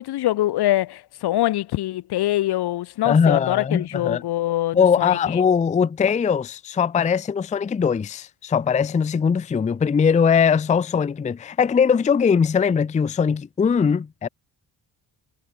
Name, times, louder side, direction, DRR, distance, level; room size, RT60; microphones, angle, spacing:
voice 1, 0.0-5.4, left 14 dB, 65° left, 0.8 m, -24 dB
voice 2, 3.0-4.2 4.7-14.3, left 6 dB, 20° left, 0.4 m, -20 dB
cardioid pair, 165°, 43 cm